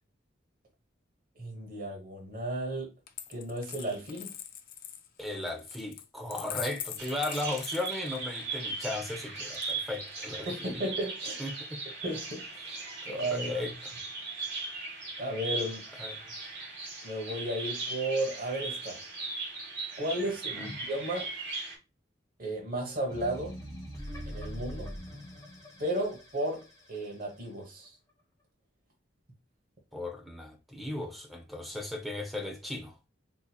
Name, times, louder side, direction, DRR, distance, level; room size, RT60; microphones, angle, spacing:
voice 1, 1.4-2.9 3.3-4.3 10.4-11.4 12.0-12.4 13.1-13.7 15.2-15.8 17.0-19.0 20.0-21.3 22.4-23.6 24.3-24.9 25.8-26.6 26.9-27.9, right 1 dB, 50° right, 0.9 m, -34 dB
Coin (dropping), 3.1-8.5 9.5-10.3, left 10 dB, 50° left, 0.4 m, -43 dB
voice 2, 5.2-10.8 11.4-11.8 13.0-13.9 16.0-16.2 20.6-20.7 29.9-32.9, left 2 dB, ahead, 0.6 m, -36 dB
Bird vocalization bird call bird song, 7.0-21.8, right 3 dB, 70° right, 1.8 m, -38 dB
sound 1, 23.1-27.4, equal, 20° left, 1.1 m, -43 dB
3.8 x 2.8 x 2.3 m
head